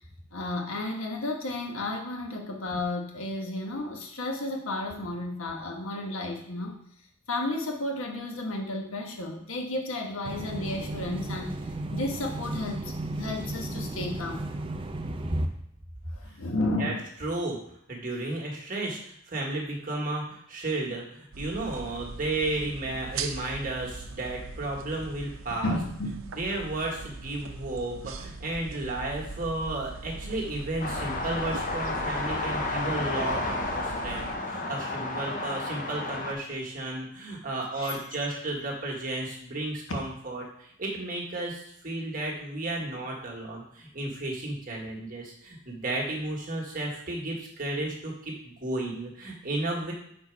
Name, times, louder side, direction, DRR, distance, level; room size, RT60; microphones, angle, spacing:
voice 1, 0.3-6.8 7.3-11.6 11.9-14.5 16.1-17.0 25.6-26.3 37.7-38.0, left 2 dB, 85° left, 2 dB, 1.2 m, -32 dB
sound 1, 10.2-15.4, right 2 dB, 25° right, 0.5 m, -35 dB
voice 2, 16.6-16.9 17.2-17.6 17.9-25.8 26.4-49.9, right 2 dB, 40° right, -1 dB, 1.5 m, -33 dB
sound 2, 21.3-34.4, right 3 dB, 90° right, 0.6 m, -41 dB
sound 3, 30.8-36.3, left 2 dB, 40° left, 0.8 m, -31 dB
6.1 x 4.4 x 4.6 m, 0.71 s
head